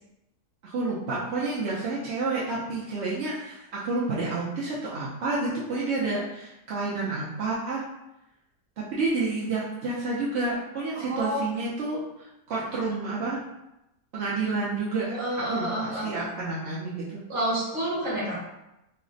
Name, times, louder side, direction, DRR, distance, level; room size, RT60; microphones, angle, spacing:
voice 1, 0.6-7.8 8.9-13.4 14.1-15.2 15.5-17.2, right 3 dB, 65° right, -7 dB, 0.7 m, -29 dB
voice 2, 11.0-11.4 15.1-16.1 17.3-18.4, right 1 dB, 35° right, -6 dB, 1.2 m, -29 dB
3.2 x 2.0 x 3.7 m, 0.90 s
omnidirectional pair, 1.7 m